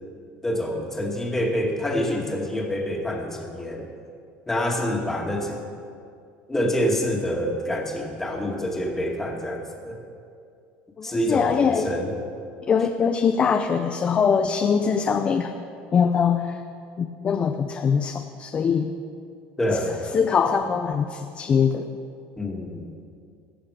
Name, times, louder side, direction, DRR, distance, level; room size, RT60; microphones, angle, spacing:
voice 1, 0.4-3.8 4.5-5.6 6.5-10.0 11.0-12.1 19.6-20.0 22.4-22.9, equal, 10° left, 0 dB, 2.1 m, -26 dB
voice 2, 11.0-11.8 12.7-15.5 15.9-16.6 17.0-18.9 20.1-21.9, left 6 dB, 30° left, 5 dB, 0.6 m, -22 dB
21.0 x 8.1 x 5.0 m, 2.3 s
cardioid pair, 135°, 4 cm